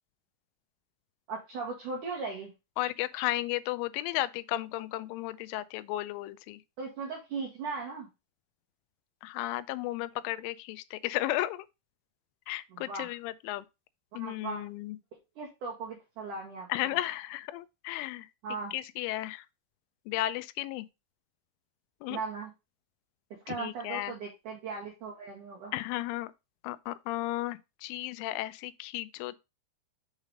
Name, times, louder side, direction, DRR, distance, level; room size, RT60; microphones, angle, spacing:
voice 1, 1.3-2.5 6.8-8.1 12.7-13.1 14.1-14.7 15.3-17.0 18.4-18.7 22.1-22.5 23.4-25.7, right 4 dB, 80° right, 1.8 m, -38 dB
voice 2, 2.8-6.6 9.2-11.7 12.5-13.6 14.1-15.0 16.7-18.3 18.7-19.4 20.1-20.9 22.0-22.2 23.5-24.1 25.7-26.3 26.6-29.4, left 16 dB, 85° left, 3.0 m, -34 dB
7.4 x 3.2 x 5.0 m
omnidirectional pair, 5.5 m